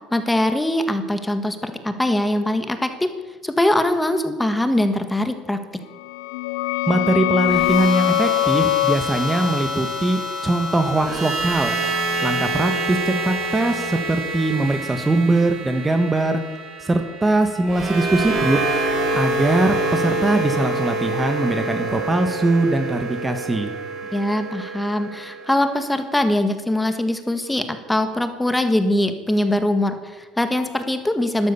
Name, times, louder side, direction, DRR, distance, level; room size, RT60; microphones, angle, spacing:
voice 1, 0.1-3.1 3.4-5.6 24.1-31.5, left 1 dB, 10° left, 8 dB, 1.5 m, -22 dB
sound 1, 6.0-11.4, left 17 dB, 85° left, 0.5 m, -24 dB
voice 2, 6.9-11.7 12.2-16.4 16.8-18.6 19.1-23.7, right 2 dB, 15° right, 7 dB, 1.3 m, -21 dB
sound 2, 7.4-25.6, right 2 dB, 50° right, 4.9 m, -27 dB
12.5 x 12.5 x 7.0 m, 1.2 s
supercardioid pair, 105°, 0 cm